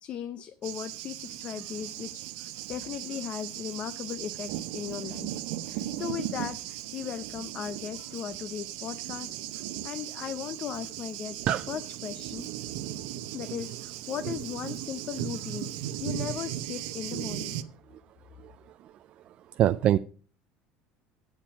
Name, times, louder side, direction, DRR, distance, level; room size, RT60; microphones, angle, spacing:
voice 1, 0.0-5.3 5.7-12.5 13.3-17.6, left 9 dB, 40° left, 10 dB, 0.7 m, -38 dB
Thunder, 0.6-17.6, right 13 dB, 80° right, 0.8 m, -37 dB
voice 2, 19.6-20.0, right 12 dB, 45° right, 13 dB, 0.4 m, -22 dB
9.0 x 7.4 x 5.9 m, 0.41 s
cardioid pair, 140°, 3 cm